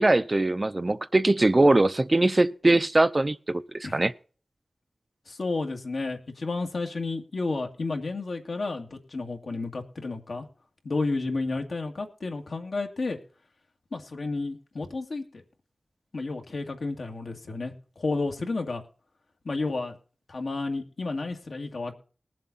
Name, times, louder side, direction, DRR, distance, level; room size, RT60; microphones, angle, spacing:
voice 1, 0.0-3.6 3.9-4.1, right 2 dB, 30° right, 0.6 m, -21 dB
voice 2, 5.3-10.5 10.8-13.2 13.9-15.4 16.1-18.8 19.4-20.0 20.3-21.9, left 3 dB, 65° left, 2.1 m, -31 dB
20.0 x 7.5 x 4.1 m
wide cardioid pair, 90°, 0 cm